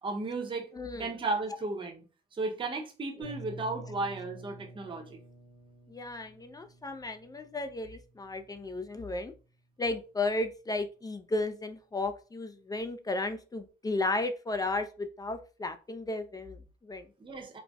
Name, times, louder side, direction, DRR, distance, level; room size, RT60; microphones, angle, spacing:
voice 1, 0.0-0.7 1.0-2.0 2.3-5.2 17.2-17.6, right 3 dB, 25° right, 0.6 m, -34 dB
voice 2, 0.8-1.1 3.2-3.3 5.9-9.3 9.8-17.1, left 2 dB, 20° left, 0.3 m, -34 dB
sound 1, 3.2-9.0, right 1 dB, 85° left, 1.1 m, -49 dB
4.0 x 2.0 x 2.3 m
cardioid pair, 90°, 20 cm